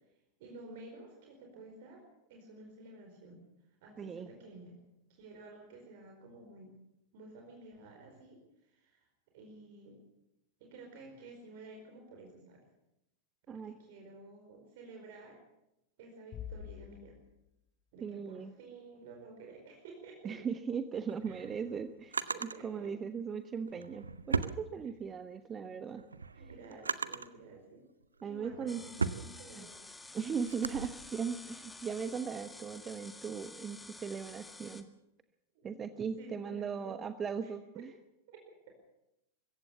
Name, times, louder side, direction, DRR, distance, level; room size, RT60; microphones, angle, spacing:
voice 1, 0.4-2.0 2.3-3.4 3.8-4.8 5.1-6.7 7.1-9.1 9.3-10.0 10.6-12.7 13.5-15.4 16.0-17.2 17.9-20.4 21.3-21.4 22.3-22.9 26.3-27.9 28.2-29.8 35.6-35.8 36.2-37.0 37.4-37.5 37.7-37.9 38.3-38.4 38.7-38.8, right 3 dB, 50° right, 2 dB, 4.6 m, -52 dB
voice 2, 4.0-4.3 13.5-13.7 18.0-18.5 20.2-22.2 22.6-26.0 28.2-28.8 29.6-29.7 30.1-34.8 35.6-37.9, right 6 dB, 20° right, 10 dB, 1.1 m, -38 dB
sound 1, 16.3-17.8, left 9 dB, 35° left, 4.9 m, -46 dB
Drawer open or close, 20.9-22.6 23.6-25.3 25.7-27.4 28.0-30.9, right 4 dB, 75° right, 0.9 m, -38 dB
sound 2, 28.7-34.8, left 2 dB, 10° left, 1.7 m, -50 dB
24.5 x 15.0 x 7.1 m, 0.86 s
figure-of-eight pair, 90°, 0 cm